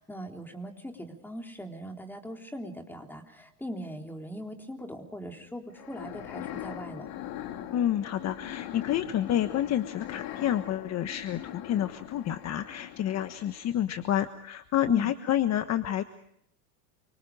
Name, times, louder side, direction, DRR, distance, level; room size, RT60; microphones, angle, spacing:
voice 1, 0.0-7.1 14.9-15.1, equal, 5° left, 3 dB, 3.7 m, -40 dB
sound 1, 5.7-13.8, left 12 dB, 50° left, 2.7 m, -41 dB
voice 2, 7.7-16.0, left 11 dB, 35° left, 9 dB, 1.4 m, -29 dB
28.5 x 25.5 x 5.0 m, 0.72 s
supercardioid pair, 125°, 47 cm